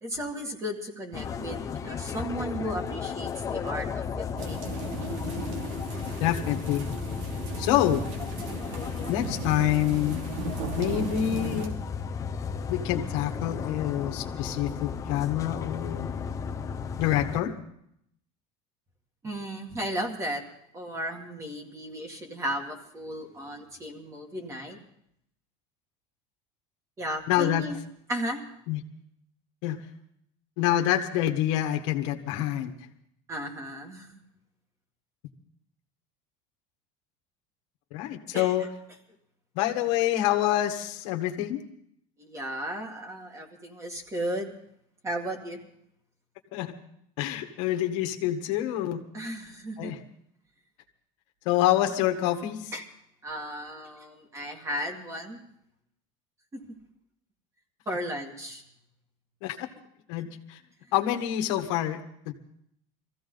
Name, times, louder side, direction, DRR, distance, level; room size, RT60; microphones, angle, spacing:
voice 1, 0.0-4.8 19.2-20.4 20.7-24.8 27.0-27.8 28.1-28.4 33.3-34.2 38.3-38.5 42.2-44.5 45.0-45.6 49.1-49.9 52.7-52.8 53.2-55.4 56.5-56.6 57.9-58.6, equal, 20° right, 3 dB, 2.1 m, -35 dB
sound 1, 1.1-17.4, left 6 dB, 20° left, 0.8 m, -34 dB
sound 2, 4.4-11.7, right 3 dB, 90° right, 2.9 m, -36 dB
voice 2, 6.2-6.8 7.6-8.1 9.1-10.3 10.7-11.7 12.7-16.1 17.0-17.5 27.3-27.6 28.7-28.8 29.6-29.8 30.6-32.7 37.9-38.7 39.5-41.6 46.5-46.7 47.2-49.0 49.8-50.0 51.4-52.7 59.4-59.7 60.1-60.6 60.9-62.3, left 12 dB, 70° left, 5 dB, 1.6 m, -27 dB
23.0 x 15.0 x 4.0 m, 0.71 s
cardioid pair, 160°, 16 cm